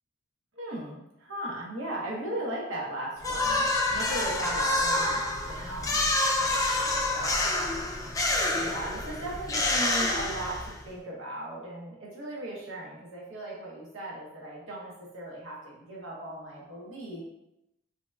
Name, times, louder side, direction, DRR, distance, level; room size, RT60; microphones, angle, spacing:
voice 1, 0.5-6.1 6.4-7.7 8.5-17.2, right 1 dB, 90° right, -3 dB, 0.9 m, -38 dB
sound 1, 3.2-10.9, left 2 dB, 20° left, 0.3 m, -27 dB
3.2 x 2.7 x 2.2 m, 0.85 s
head